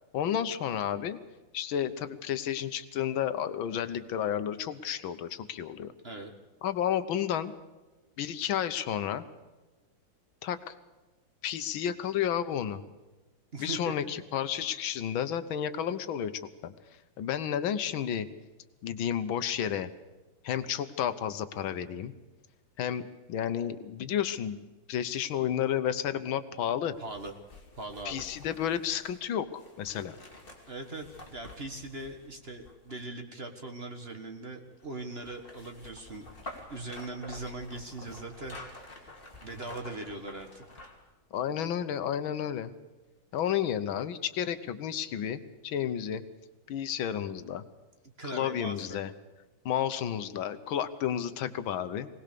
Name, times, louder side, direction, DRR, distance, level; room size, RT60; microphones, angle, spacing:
voice 1, 0.1-1.2 1.5-5.9 6.6-7.5 8.2-9.2 10.4-10.7 11.4-12.8 13.6-16.7 17.2-18.3 18.8-19.9 20.4-22.1 22.8-24.6 24.9-27.0 28.1-29.5 29.8-30.2 41.3-42.7 43.3-46.2 46.7-47.6 48.3-49.1 49.7-52.1, left 9 dB, 75° left, 12 dB, 1.7 m, -31 dB
voice 2, 13.5-13.9 27.0-27.3 27.8-28.2 30.7-36.3 36.7-39.1 39.4-40.7 48.2-49.0, right 2 dB, 30° right, 5 dB, 1.6 m, -40 dB
sound 1, 27.0-33.1 34.8-41.1 41.5-41.6, left 2 dB, 25° left, 2.7 m, -49 dB
21.0 x 18.5 x 6.8 m, 1.2 s
omnidirectional pair, 2.2 m